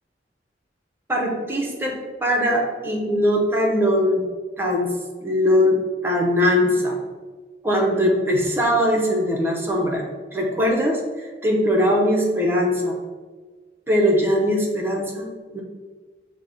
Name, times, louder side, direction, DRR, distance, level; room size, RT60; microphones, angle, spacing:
voice 1, 1.1-4.2 4.6-4.9 5.2-7.0 7.6-13.0 13.9-15.6, equal, 15° right, -1 dB, 0.7 m, -21 dB
6.0 x 2.1 x 3.9 m, 1.4 s
head